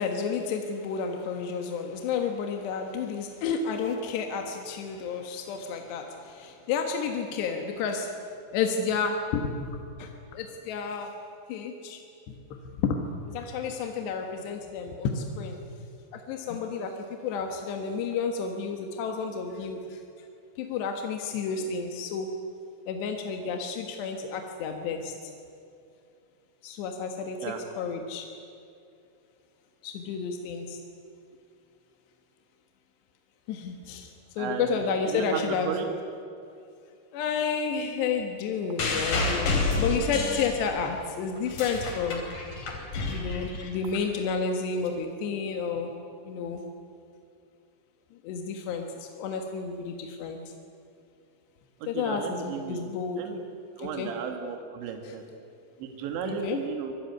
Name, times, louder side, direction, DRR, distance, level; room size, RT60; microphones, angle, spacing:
voice 1, 0.0-8.1 8.5-9.7 10.0-11.1 11.5-15.6 16.1-20.0 20.6-22.3 22.9-25.1 26.6-27.4 27.8-28.3 29.8-30.8 33.5-35.7 37.1-42.2 42.9-45.9 46.3-46.6 48.2-50.4 51.9-53.2 53.8-54.1 55.1-55.2 56.2-56.6, left 5 dB, 75° left, 4 dB, 3.6 m, -31 dB
voice 2, 34.4-34.8 35.1-35.9 51.8-52.9 53.2-53.4 53.8-55.2 55.8-56.9, right 6 dB, 85° right, 4 dB, 4.1 m, -34 dB
sound 1, 38.8-41.0 41.4-44.0 44.9-45.0, left 3 dB, 50° left, 4.9 m, -29 dB
25.5 x 21.5 x 9.5 m, 2.5 s
omnidirectional pair, 5.0 m